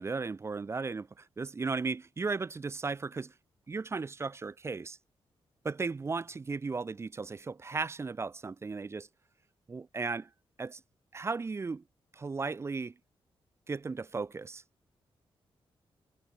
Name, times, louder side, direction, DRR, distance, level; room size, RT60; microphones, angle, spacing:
voice 1, 0.0-3.3 3.7-5.0 5.6-9.1 9.7-10.3 10.6-10.8 11.1-11.8 12.1-12.9 13.7-14.6, right 4 dB, 30° right, 0.5 m, -35 dB
cardioid pair, 110°, 10 cm